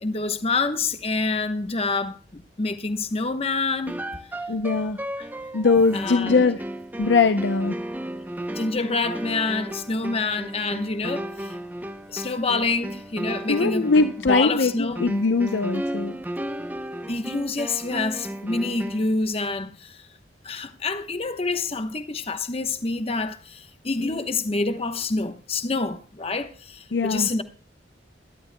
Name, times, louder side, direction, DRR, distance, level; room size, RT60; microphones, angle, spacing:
voice 1, 0.0-4.0 5.9-6.4 8.5-11.6 12.1-13.9 14.3-15.0 17.1-20.0 20.4-27.4, left 3 dB, 35° left, 1.0 m, -27 dB
sound 1, 3.9-19.2, right 1 dB, 10° right, 0.6 m, -34 dB
voice 2, 4.5-5.0 5.5-6.6 7.0-7.8 13.5-16.2 24.0-24.2 26.9-27.3, left 4 dB, 80° left, 0.6 m, -21 dB
23.0 x 11.5 x 2.2 m
head